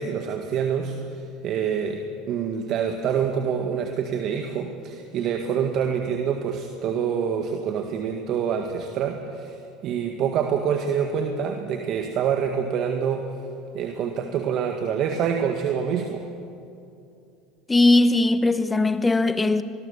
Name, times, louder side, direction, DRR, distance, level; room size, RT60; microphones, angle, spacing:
voice 1, 0.0-13.3 13.7-16.3, right 7 dB, 55° right, 1.9 m, -26 dB
voice 2, 17.7-19.6, left 2 dB, 15° left, 1.3 m, -19 dB
25.5 x 20.5 x 7.1 m
hypercardioid pair, 85°, 0 cm